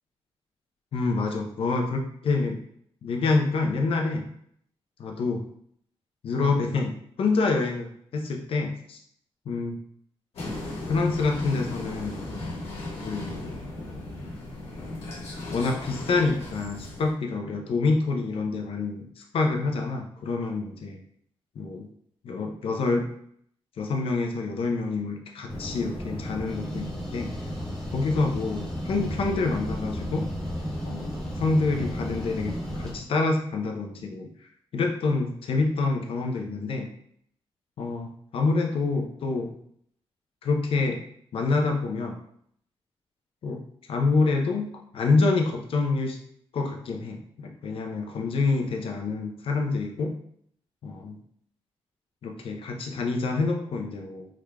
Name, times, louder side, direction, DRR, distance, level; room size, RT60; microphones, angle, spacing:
voice 1, 0.9-2.6 3.0-4.2 5.0-5.4 6.2-9.0 9.5-9.8 10.9-12.2 13.0-13.6 15.5-21.0 21.6-21.9 22.2-23.1 23.8-27.3 27.9-30.3 30.8-31.1 31.4-34.3 34.7-36.9 37.8-39.5 40.4-41.0 41.3-42.2 43.4-43.6 43.9-46.2 46.5-50.2 50.8-51.2 52.2-54.3, left 3 dB, 65° left, 2 dB, 0.6 m, -27 dB
sound 1, 10.3-17.1, left 2 dB, 90° left, 1.3 m, -36 dB
sound 2, 25.5-32.9, equal, 5° left, 1.0 m, -33 dB
3.7 x 3.2 x 2.3 m, 0.68 s
wide cardioid pair, 130°, 10 cm